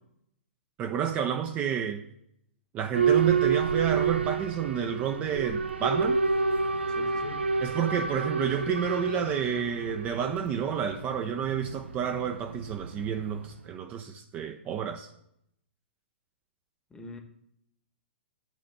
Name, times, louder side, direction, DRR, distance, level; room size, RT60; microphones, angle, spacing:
voice 1, 0.8-2.0 2.7-6.2 7.6-15.1, right 8 dB, 25° right, 0.5 m, -30 dB
Boat Water vehicle / Alarm, 2.9-13.6, right 5 dB, 75° right, 0.7 m, -29 dB
voice 2, 6.9-7.4 16.9-17.2, left 2 dB, 10° left, 1.0 m, -43 dB
9.1 x 5.0 x 6.8 m
figure-of-eight pair, 110°, 6 cm